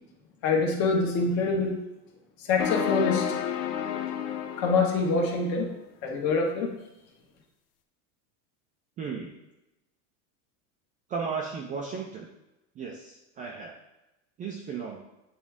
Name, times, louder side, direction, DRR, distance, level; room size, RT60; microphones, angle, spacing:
voice 1, 0.4-1.8 2.4-3.2 4.6-5.7 6.0-6.7, left 4 dB, 55° left, 0 dB, 1.5 m, -25 dB
sound 1, 2.6-5.6, left 9 dB, 85° left, 0.8 m, -31 dB
voice 2, 9.0-9.3 11.1-12.3 12.8-13.7 14.4-15.0, right 5 dB, 20° right, -1 dB, 0.3 m, -35 dB
8.6 x 3.6 x 3.5 m, 0.95 s
supercardioid pair, 135°, 44 cm